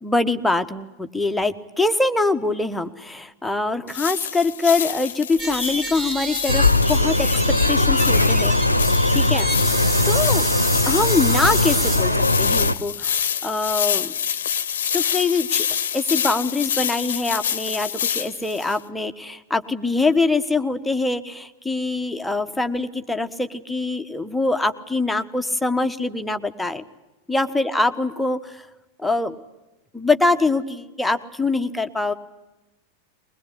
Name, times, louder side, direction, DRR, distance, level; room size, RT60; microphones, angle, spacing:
voice 1, 0.0-7.3 7.7-9.5 10.0-10.5 10.9-14.1 14.9-15.7 15.9-26.8 27.3-28.6 29.0-29.3 29.9-32.1, left 3 dB, 5° left, 7 dB, 1.3 m, -24 dB
sound 1, 3.9-18.8, left 9 dB, 60° left, 0.9 m, -27 dB
sound 2, 5.4-12.2, right 2 dB, 20° right, 3.5 m, -30 dB
sound 3, 6.5-12.7, left 2 dB, 85° left, 0.8 m, -19 dB
22.0 x 21.5 x 9.8 m, 1.0 s
figure-of-eight pair, 90°, 0 cm